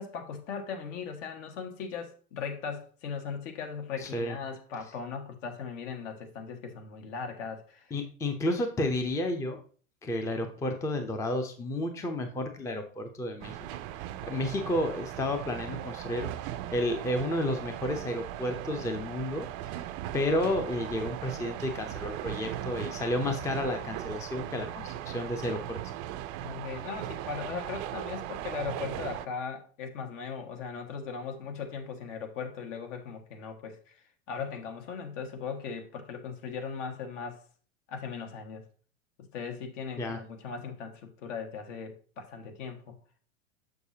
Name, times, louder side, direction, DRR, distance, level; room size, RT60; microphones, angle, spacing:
voice 1, 0.0-7.9 24.6-24.9 26.4-34.0 34.3-37.4 37.9-38.6 39.2-42.9, left 6 dB, 65° left, 1.6 m, -38 dB
voice 2, 4.0-4.4 7.9-9.6 10.0-13.6 14.3-16.3 16.7-19.5 19.7-19.8 20.1-25.8 40.0-40.2, left 1 dB, 10° left, 0.5 m, -31 dB
sound 1, 13.4-29.3, right 12 dB, 40° right, 0.5 m, -38 dB
6.7 x 6.4 x 2.7 m
hypercardioid pair, 120°, 40 cm